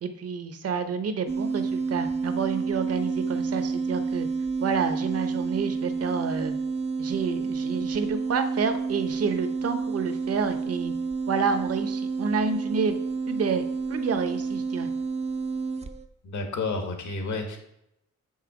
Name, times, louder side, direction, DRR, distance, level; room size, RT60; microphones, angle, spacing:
voice 1, 0.0-4.3 4.6-6.5 7.0-10.9 11.3-13.0 13.3-13.6 13.9-14.9, right 5 dB, 55° right, 9 dB, 0.8 m, -29 dB
sound 1, 1.3-16.0, right 4 dB, 20° right, 0.4 m, -29 dB
voice 2, 16.2-17.6, left 3 dB, 75° left, 5 dB, 1.5 m, -30 dB
6.5 x 5.6 x 4.8 m, 0.80 s
wide cardioid pair, 165°, 30 cm